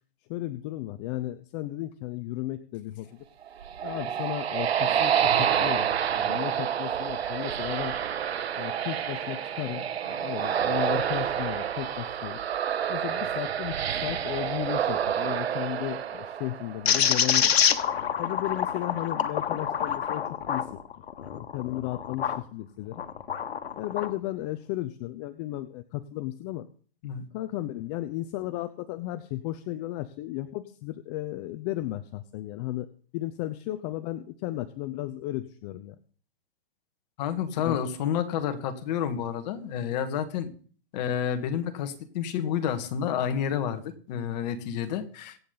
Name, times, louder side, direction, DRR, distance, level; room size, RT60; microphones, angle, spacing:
voice 1, 0.3-3.2 3.8-7.9 8.6-12.4 12.9-13.7 14.0-17.5 18.2-20.7 21.3-23.0 23.8-26.7 27.3-32.9 33.1-36.0 37.6-37.8, left 15 dB, 25° left, 10 dB, 0.6 m, -34 dB
sound 1, 3.4-17.0, right 9 dB, 85° right, 1.7 m, -28 dB
sound 2, 16.9-22.4 22.9-24.1, left 8 dB, 90° left, 1.5 m, -27 dB
voice 2, 37.2-40.5 40.9-45.4, left 8 dB, 45° left, 8 dB, 1.9 m, -30 dB
23.5 x 8.6 x 4.0 m, 0.43 s
hypercardioid pair, 150°, 30 cm